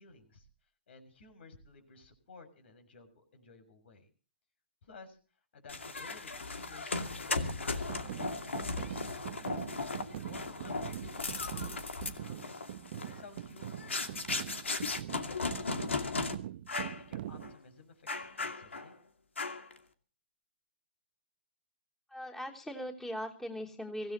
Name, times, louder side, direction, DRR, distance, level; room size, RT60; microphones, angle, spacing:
voice 1, 0.0-4.1 4.8-9.6 9.9-12.7 13.1-16.1 16.7-19.0, left 3 dB, 65° left, 8 dB, 6.7 m, -56 dB
sound 1, 5.7-16.3 16.7-17.0 17.4-17.5 18.1-18.9 19.4-19.8, left 3 dB, 85° left, 2.4 m, -37 dB
sound 2, 7.9-17.5, right 12 dB, 55° right, 0.7 m, -43 dB
voice 2, 22.1-24.1, equal, 5° left, 0 dB, 3.3 m, -39 dB
24.5 x 17.0 x 3.0 m, 0.39 s
hypercardioid pair, 125°, 6 cm